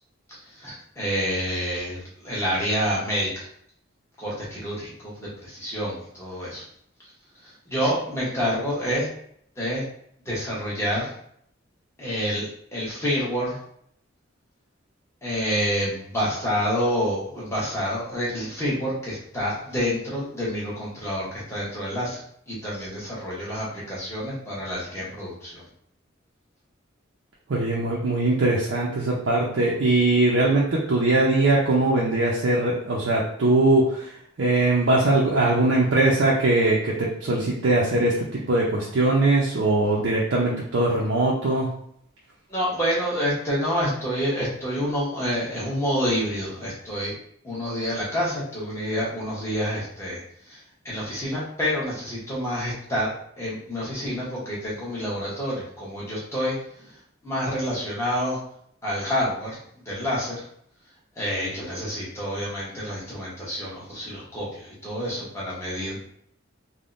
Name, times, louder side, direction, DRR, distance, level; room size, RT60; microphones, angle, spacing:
voice 1, 0.5-3.5 4.2-6.6 7.4-9.1 9.6-9.8 10.3-11.1 12.0-13.6 15.2-25.6 42.5-47.1 47.4-50.2 50.5-56.9 57.2-58.4 58.8-59.6 59.8-60.4 61.2-66.0, equal, 15° left, -7 dB, 0.9 m, -28 dB
voice 2, 27.5-34.1 34.4-41.7, right 2 dB, 80° right, -5 dB, 0.5 m, -21 dB
3.4 x 2.1 x 2.5 m, 0.66 s
head